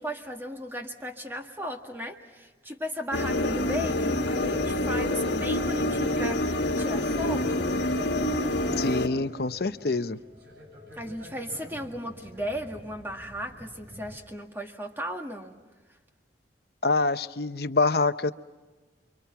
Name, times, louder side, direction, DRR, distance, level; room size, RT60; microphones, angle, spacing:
voice 1, 0.0-7.7 11.0-15.5, equal, 10° right, 1.9 m, -36 dB
sound 1, 3.1-9.1, left 1 dB, 80° left, 1.4 m, -27 dB
sound 2, 4.1-14.2, equal, 60° right, 7.8 m, -47 dB
voice 2, 8.8-10.2 16.8-18.3, left 3 dB, 60° left, 0.8 m, -25 dB
29.0 x 24.5 x 5.9 m
head